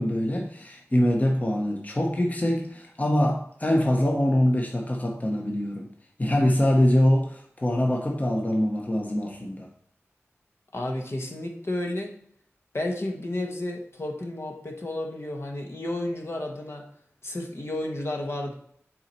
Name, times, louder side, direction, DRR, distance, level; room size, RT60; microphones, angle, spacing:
voice 1, 0.0-5.9 6.2-9.7, left 1 dB, 30° left, 1 dB, 1.1 m, -24 dB
voice 2, 10.7-12.2 12.7-16.8 17.2-18.5, left 1 dB, 55° left, 2 dB, 1.3 m, -32 dB
7.4 x 4.2 x 4.4 m, 0.65 s
wide cardioid pair, 45°, 5 cm